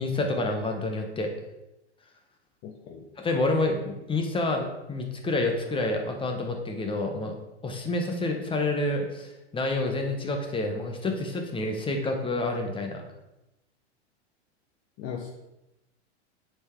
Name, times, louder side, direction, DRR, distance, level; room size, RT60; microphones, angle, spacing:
voice 1, 0.0-1.3 3.2-7.4 7.6-13.0, left 2 dB, 15° left, 3 dB, 1.3 m, -28 dB
voice 2, 2.6-3.1 15.0-15.3, left 7 dB, 40° left, 0 dB, 1.0 m, -38 dB
8.4 x 4.7 x 4.6 m, 0.94 s
hypercardioid pair, 115°, 34 cm